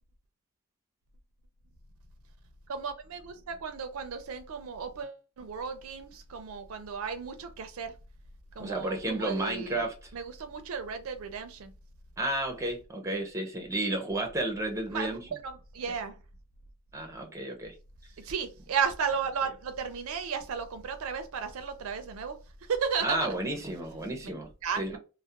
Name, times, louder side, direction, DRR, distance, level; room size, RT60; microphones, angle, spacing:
voice 1, 2.7-7.9 8.6-9.9 10.1-11.7 14.9-16.2 18.2-22.4 22.7-23.3 24.2-24.3 24.6-25.0, right 6 dB, 70° right, 0.4 m, -34 dB
voice 2, 8.6-10.0 12.2-15.4 16.9-17.7 23.0-24.5 24.8-25.0, right 1 dB, 15° right, 0.6 m, -32 dB
2.3 x 2.0 x 2.8 m
head